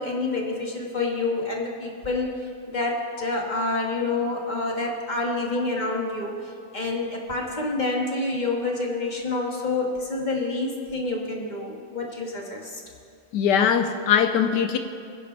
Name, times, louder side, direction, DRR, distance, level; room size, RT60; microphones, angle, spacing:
voice 1, 0.0-2.3 2.7-12.8, left 2 dB, 25° left, -1 dB, 1.6 m, -28 dB
voice 2, 13.3-14.8, left 8 dB, 75° left, 7 dB, 1.2 m, -21 dB
21.5 x 10.0 x 3.3 m, 2.5 s
omnidirectional pair, 1.9 m